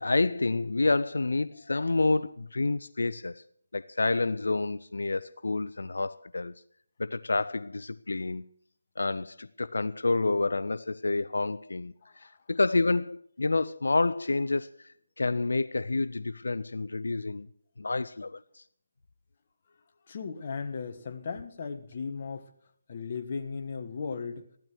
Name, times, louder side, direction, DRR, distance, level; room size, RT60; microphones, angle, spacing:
voice 1, 0.0-3.4 3.7-6.5 7.0-8.5 9.0-17.5 17.8-18.6, left 3 dB, 85° left, 0.5 m, -29 dB
voice 2, 20.1-22.5 22.9-24.5, left 5 dB, 40° left, 1.4 m, -36 dB
15.5 x 12.0 x 6.2 m
figure-of-eight pair, 165°, 0 cm